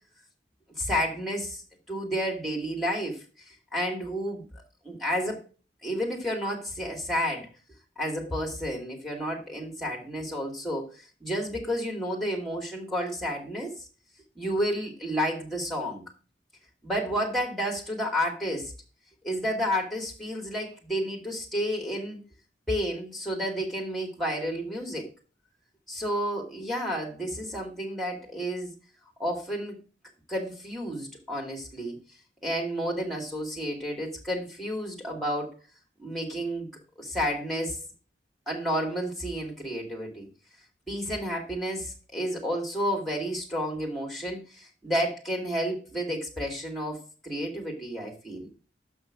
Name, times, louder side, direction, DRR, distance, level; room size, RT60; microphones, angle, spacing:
voice 1, 0.8-1.6 1.9-4.5 4.8-5.4 5.8-7.5 8.0-13.8 14.4-16.0 16.8-18.7 19.2-22.2 22.7-25.1 25.9-28.7 29.2-29.8 30.3-32.0 32.4-35.5 36.0-36.7 37.0-37.8 38.5-40.3 40.9-48.5, equal, ahead, 0 dB, 2.3 m, -31 dB
6.3 x 5.8 x 5.9 m, 0.35 s
head